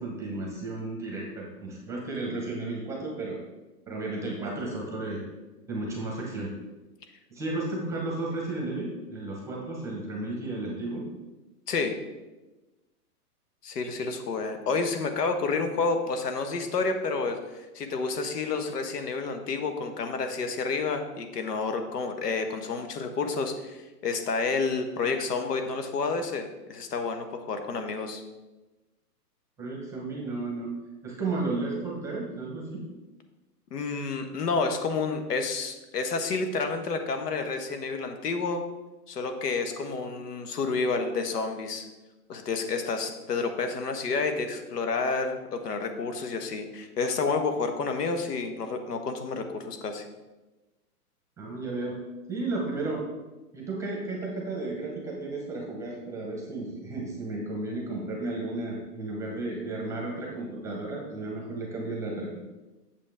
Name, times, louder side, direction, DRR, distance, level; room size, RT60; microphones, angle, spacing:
voice 1, 0.0-3.4 3.9-5.2 5.7-6.5 7.3-11.1 29.6-30.7 31.0-32.8 51.4-52.0 52.3-53.0 53.5-62.5, right 2 dB, 5° right, -2 dB, 0.9 m, -33 dB
voice 2, 13.6-28.2 33.7-38.6 39.1-41.8 42.3-50.0, left 4 dB, 80° left, 6 dB, 1.4 m, -30 dB
8.3 x 7.1 x 3.5 m, 1.1 s
hypercardioid pair, 155°, 47 cm